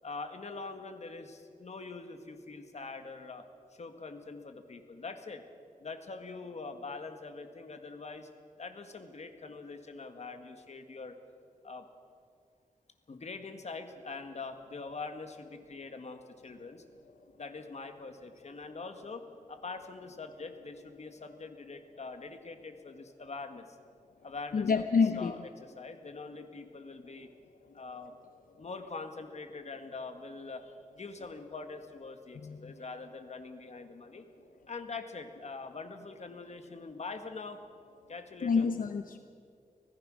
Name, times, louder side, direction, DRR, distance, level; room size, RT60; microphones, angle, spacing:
voice 1, 0.0-3.4 3.7-5.4 5.8-8.3 8.6-11.1 11.6-11.8 13.1-16.8 17.3-23.7 24.2-27.3 27.7-28.1 28.6-34.2 34.7-37.6 38.1-38.7, left 4 dB, 50° left, 7 dB, 1.7 m, -43 dB
voice 2, 24.5-25.3 32.4-32.6 38.4-39.2, left 5 dB, 75° left, 8 dB, 0.8 m, -27 dB
25.0 x 16.5 x 6.4 m, 2.3 s
wide cardioid pair, 125°, 14 cm